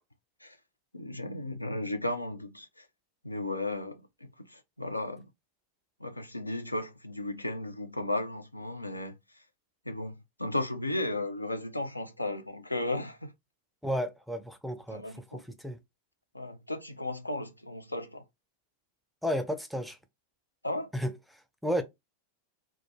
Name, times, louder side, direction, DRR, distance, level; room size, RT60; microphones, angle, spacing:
voice 1, 0.9-2.9 3.2-5.3 6.0-9.2 9.9-13.3 14.9-15.4 16.3-18.2 20.6-20.9, left 1 dB, 85° left, 0.3 m, -35 dB
voice 2, 13.8-15.0 15.3-15.8 19.2-20.0 20.9-21.1 21.6-21.8, equal, ahead, 0.4 m, -32 dB
2.3 x 2.1 x 3.0 m
figure-of-eight pair, 90°, 0 cm